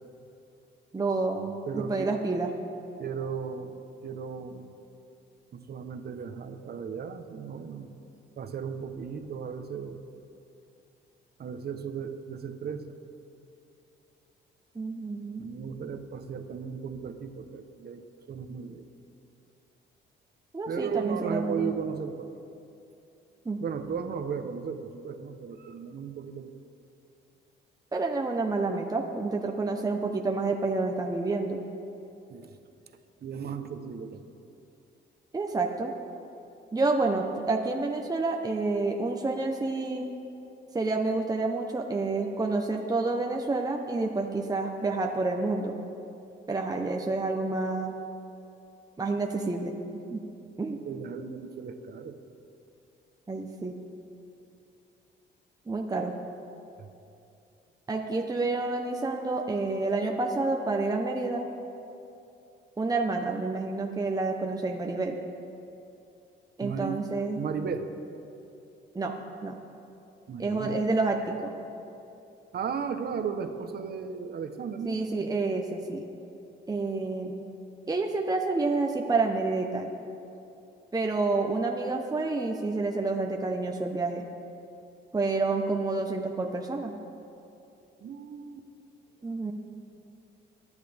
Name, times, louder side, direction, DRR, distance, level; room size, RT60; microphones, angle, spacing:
voice 1, 0.9-2.5 14.7-15.5 20.5-21.7 23.4-23.6 27.9-31.6 35.3-35.9 36.7-40.1 40.7-45.8 46.5-47.9 49.0-49.7 50.1-50.2 50.6-50.8 53.3-53.8 55.7-56.1 57.9-61.5 62.8-65.2 66.6-67.4 68.9-69.1 69.4-69.6 70.4-71.5 74.8-76.0 76.7-77.5 77.9-79.9 80.9-84.3 85.1-86.9 89.2-89.5, right 3 dB, 20° right, 2 dB, 1.0 m, -29 dB
voice 2, 1.7-2.1 3.0-4.7 5.5-8.0 8.4-10.0 11.4-12.8 15.4-18.9 20.6-22.3 23.6-26.5 32.3-32.6 33.2-34.3 50.8-52.2 56.8-56.9 66.6-67.0 67.3-67.9 70.3-70.8 72.5-75.3 88.0-88.6, right 6 dB, 55° right, 7 dB, 1.1 m, -35 dB
24.0 x 10.0 x 3.6 m, 2.8 s
cardioid pair, 90°, 20 cm